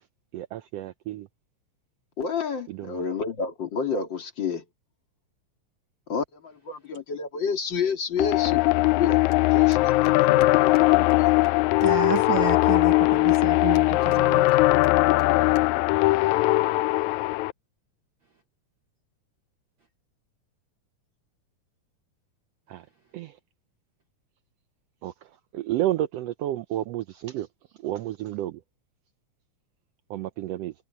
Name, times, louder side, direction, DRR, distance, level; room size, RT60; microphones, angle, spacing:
voice 1, 0.3-1.3 2.7-3.0 22.7-22.8 23.1-23.3 25.0-25.1 25.5-27.5 27.8-28.6 30.1-30.7, right 13 dB, 85° right, 1.4 m, -30 dB
voice 2, 2.2-4.6 6.1-8.6 8.9-11.3, left 6 dB, 40° left, 3.0 m, -30 dB
sound 1, 8.2-17.5, left 20 dB, 80° left, 1.8 m, -20 dB
sound 2, 9.3-9.4 9.7-10.1 10.4-10.5 10.7-10.8 11.1-11.2 11.4-11.9 12.1-12.2 12.7-12.8 13.3-13.8 14.1-14.5 14.8-14.9 15.2-15.3 15.5-15.6 16.0-16.2 17.0-17.2, left 5 dB, 60° left, 5.2 m, -47 dB
voice 3, 11.8-14.5, right 9 dB, 60° right, 1.3 m, -31 dB
omnidirectional pair, 3.5 m